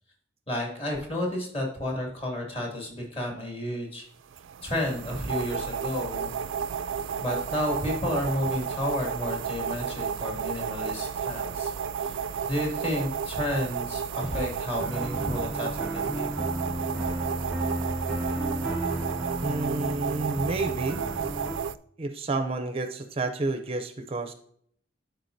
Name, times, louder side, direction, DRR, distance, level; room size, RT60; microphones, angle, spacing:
voice 1, 0.5-4.1 4.6-6.3 7.2-11.7 12.0-12.2 12.5-16.3, left 1 dB, 30° left, 0 dB, 2.4 m, -31 dB
sound 1, 4.3-21.7, right 7 dB, 80° right, 0.4 m, -32 dB
sound 2, 14.8-21.6, right 1 dB, 5° right, 0.9 m, -33 dB
voice 2, 19.4-21.0 22.0-24.3, right 2 dB, 30° right, 8 dB, 0.5 m, -30 dB
12.0 x 4.6 x 2.6 m, 0.64 s
head